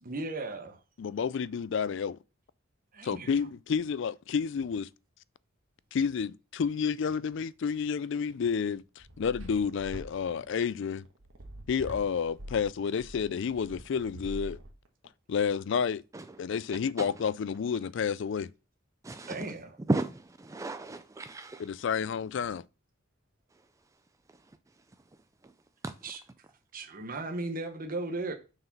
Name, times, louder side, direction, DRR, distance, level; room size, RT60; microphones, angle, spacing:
voice 1, 0.0-0.8 2.9-3.3 19.3-19.8 26.0-26.2 26.7-28.3, right 2 dB, 45° right, 1.0 m, -36 dB
voice 2, 1.0-2.2 3.0-4.9 5.9-11.1 11.7-14.6 15.3-16.0 16.4-18.5 21.6-22.6, left 6 dB, 60° left, 0.4 m, -30 dB
sound 1, 8.5-15.1, equal, 85° right, 1.6 m, -44 dB
voice 3, 19.0-19.4 19.9-21.6 25.8-25.9, right 2 dB, 15° right, 0.4 m, -33 dB
6.4 x 4.7 x 5.9 m
head